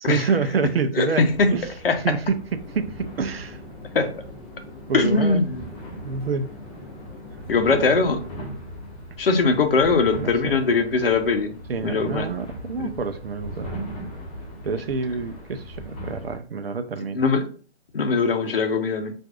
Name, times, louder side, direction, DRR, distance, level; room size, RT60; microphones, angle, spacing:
voice 1, 0.0-1.7 2.0-2.4 2.7-3.6 4.9-5.4 6.0-6.5 7.8-8.1 10.1-10.5 11.7-13.8 14.6-17.2, right 5 dB, 60° right, 0.6 m, -27 dB
voice 2, 0.9-1.5 1.8-2.0 3.9-4.1 4.9-5.7 7.5-8.2 9.2-12.3 12.8-12.9 17.1-17.5 17.9-19.1, left 4 dB, 55° left, 0.8 m, -21 dB
sound 1, 1.3-16.4, equal, 30° left, 1.2 m, -39 dB
sound 2, 2.5-8.5, left 2 dB, 10° left, 2.0 m, -44 dB
5.8 x 2.6 x 2.4 m
figure-of-eight pair, 145°, 34 cm